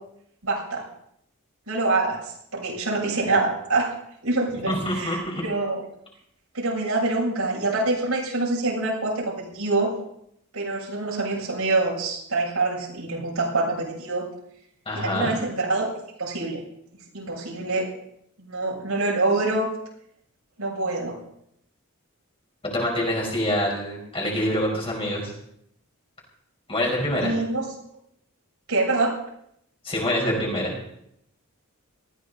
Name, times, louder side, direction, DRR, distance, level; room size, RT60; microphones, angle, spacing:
voice 1, 0.4-0.8 1.7-3.9 4.2-5.8 6.5-9.9 10.5-14.2 14.9-15.9 16.2-16.6 17.1-17.9 18.4-19.7 20.6-21.2 27.2-27.6 28.7-29.1, right 2 dB, 80° right, -4 dB, 7.4 m, -25 dB
voice 2, 4.7-5.4 14.9-15.3 22.6-25.3 26.7-27.4 29.8-30.7, left 1 dB, 25° left, -1 dB, 5.3 m, -26 dB
19.5 x 14.5 x 4.2 m, 0.74 s
head